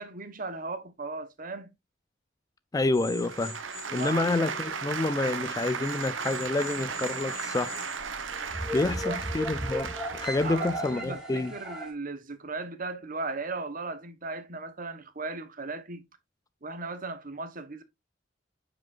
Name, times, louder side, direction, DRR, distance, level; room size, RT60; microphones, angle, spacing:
voice 1, 0.0-1.7 3.9-4.5 8.8-9.2 10.4-16.0 16.6-17.8, right 3 dB, 45° right, 1.1 m, -37 dB
voice 2, 2.7-3.6 3.9-7.8 8.7-11.5, left 2 dB, 20° left, 0.3 m, -28 dB
sound 1, 2.9-4.9 5.2-11.9, equal, ahead, 3.0 m, -38 dB
sound 2, 3.0-11.1, right 6 dB, 85° right, 1.0 m, -36 dB
9.3 x 5.1 x 2.5 m
head